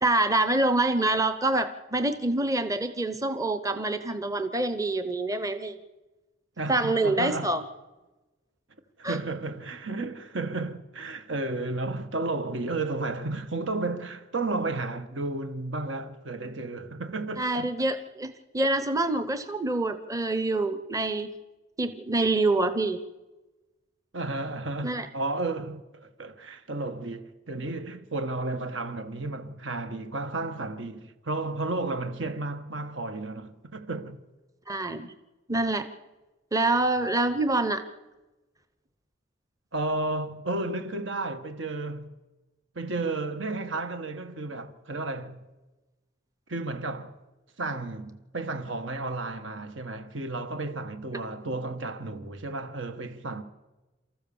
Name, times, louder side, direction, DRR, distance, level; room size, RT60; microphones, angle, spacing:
voice 1, 0.0-5.8 6.7-7.6 9.0-9.2 17.4-21.3 21.8-23.0 24.8-25.1 34.7-35.1 35.5-35.9 36.5-37.8, right 2 dB, 15° right, 0.8 m, -26 dB
voice 2, 6.6-7.6 9.0-17.7 24.1-34.2 39.7-42.1 42.7-45.4 46.5-47.1 47.6-53.4, right 2 dB, 75° right, 1.5 m, -33 dB
29.0 x 14.0 x 7.1 m
head